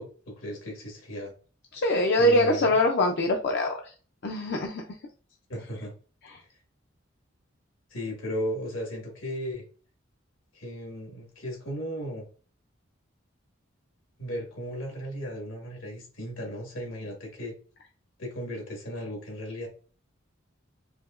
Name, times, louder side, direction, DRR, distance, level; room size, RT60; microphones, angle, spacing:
voice 1, 0.0-1.3 2.2-2.8 5.5-5.9 7.9-9.6 10.5-12.3 14.2-17.5 18.2-19.7, equal, 85° left, 1 dB, 1.6 m, -35 dB
voice 2, 1.7-3.9 4.2-4.8 6.2-6.4, left 1 dB, 55° left, 2 dB, 0.5 m, -24 dB
4.8 x 2.8 x 2.5 m, 0.39 s
head